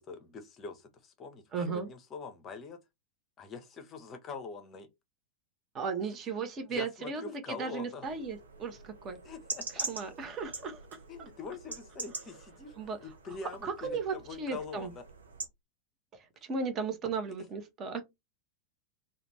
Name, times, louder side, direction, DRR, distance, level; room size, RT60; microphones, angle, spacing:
voice 1, 0.0-2.8 3.4-4.9 6.7-8.1 9.2-9.9 11.1-15.0, left 4 dB, 30° left, 0.6 m, -44 dB
voice 2, 1.5-1.9 5.7-7.2 7.6-9.2 9.9-10.8 12.8-13.0 13.6-14.9 16.5-18.0, right 5 dB, 30° right, 0.6 m, -35 dB
sound 1, 8.0-15.5, right 4 dB, 70° right, 0.6 m, -43 dB
2.4 x 2.2 x 3.1 m
figure-of-eight pair, 90°, 0 cm